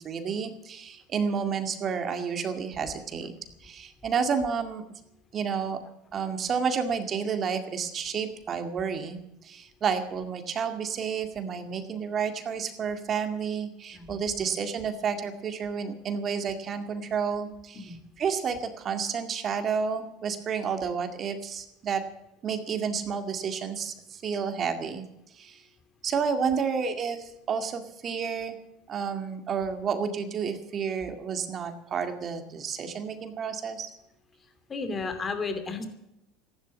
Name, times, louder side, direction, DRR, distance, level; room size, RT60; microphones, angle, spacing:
voice 1, 0.0-3.4 3.6-4.8 5.3-5.8 6.1-22.0 22.4-25.0 25.3-25.6 26.0-28.6 28.9-33.9, right 6 dB, 35° right, 7 dB, 2.0 m, -30 dB
voice 2, 34.7-35.9, left 4 dB, 25° left, 8 dB, 2.6 m, -33 dB
14.5 x 11.5 x 8.2 m, 0.86 s
supercardioid pair, 115°, 0 cm